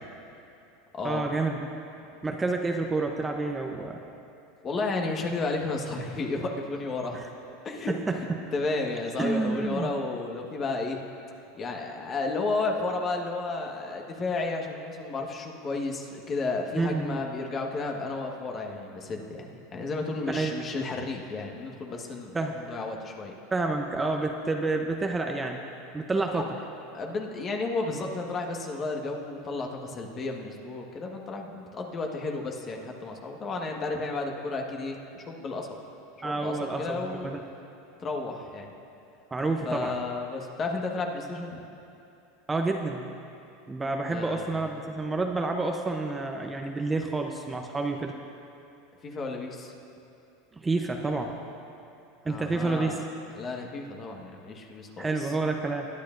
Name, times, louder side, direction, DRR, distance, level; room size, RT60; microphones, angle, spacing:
voice 1, 1.0-1.6 2.2-4.0 7.9-8.2 9.2-9.9 16.7-17.2 20.3-20.5 22.3-22.5 23.5-25.6 25.9-26.6 36.2-37.4 39.3-39.9 42.5-43.1 43.7-48.2 50.6-51.4 52.2-53.0 55.0-55.9, right 3 dB, 15° right, 3 dB, 0.8 m, -29 dB
voice 2, 4.6-7.2 7.6-7.9 8.2-11.1 11.5-23.3 26.9-35.7 36.2-37.3 38.0-38.7 39.6-41.6 44.1-44.7 49.0-49.7 52.2-53.0 53.3-55.3, left 3 dB, 35° left, 1 dB, 1.5 m, -32 dB
21.5 x 10.5 x 2.6 m, 2.8 s
hypercardioid pair, 100°, 0 cm